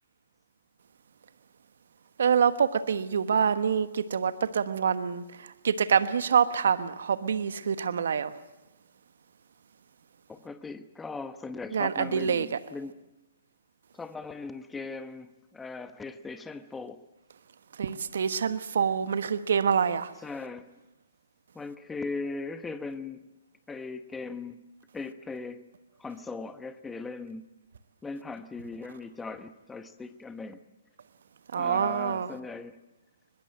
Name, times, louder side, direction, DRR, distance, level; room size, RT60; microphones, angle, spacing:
voice 1, 2.2-8.3 11.7-12.5 17.8-20.1 31.5-32.3, right 7 dB, 65° right, 1.2 m, -26 dB
voice 2, 10.3-13.1 13.9-17.0 20.2-20.7 21.5-23.2 23.7-24.6 24.9-25.6 26.0-27.5 28.0-30.6 31.6-32.8, left 4 dB, 10° left, 1.1 m, -39 dB
22.5 x 21.5 x 7.7 m
hypercardioid pair, 130°, 0 cm